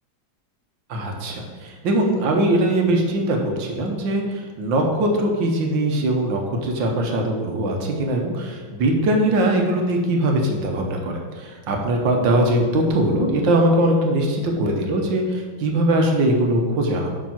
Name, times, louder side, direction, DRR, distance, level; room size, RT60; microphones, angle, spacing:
voice 1, 0.9-17.1, right 1 dB, 75° right, 2 dB, 1.7 m, -21 dB
5.6 x 5.0 x 5.8 m, 1.5 s
omnidirectional pair, 2.1 m